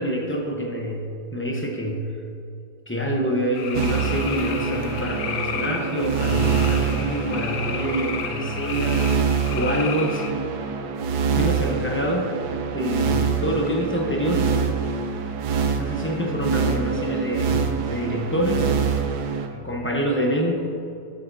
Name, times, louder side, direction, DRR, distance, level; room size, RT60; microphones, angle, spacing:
voice 1, 0.0-2.2 2.9-10.3 11.4-12.3 12.7-14.5 15.8-18.7 19.5-20.6, equal, 15° left, -1 dB, 0.4 m, -26 dB
sound 1, 3.5-10.3, left 7 dB, 75° left, 1.2 m, -33 dB
sound 2, 3.7-19.5, right 5 dB, 70° right, 1.2 m, -25 dB
13.5 x 7.9 x 2.7 m, 2.6 s
omnidirectional pair, 1.9 m